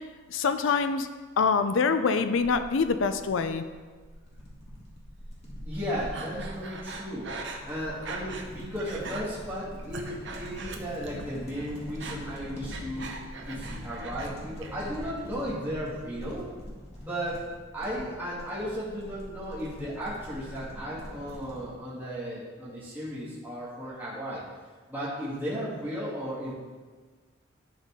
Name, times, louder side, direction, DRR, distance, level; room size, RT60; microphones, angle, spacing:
voice 1, 0.3-1.1 1.4-3.6, left 5 dB, 75° left, 10 dB, 0.5 m, -25 dB
sound 1, 2.4-21.7, equal, 35° left, 1.9 m, -43 dB
voice 2, 5.6-7.3 7.7-13.1 13.5-16.5 17.0-17.4 17.7-24.4 24.9-26.6, equal, 10° right, -10 dB, 2.0 m, -35 dB
Breathing, 6.1-8.5 8.8-9.2 9.7-11.2 11.5-14.3 14.6-15.2, right 3 dB, 60° right, 0.8 m, -41 dB
12.0 x 4.1 x 3.6 m, 1.4 s
head